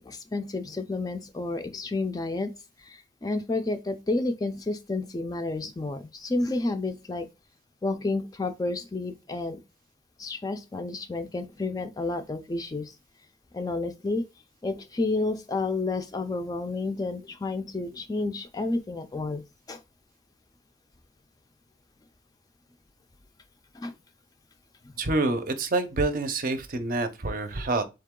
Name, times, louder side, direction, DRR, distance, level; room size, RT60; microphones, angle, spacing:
voice 1, 0.0-2.5 2.8-7.3 7.8-9.6 10.2-12.9 13.5-14.2 14.6-19.4 19.7-19.8 23.7-23.9, left 2 dB, 20° left, 0.3 m, -30 dB
voice 2, 25.0-27.8, right 2 dB, 50° right, 0.6 m, -27 dB
3.8 x 2.9 x 3.6 m
head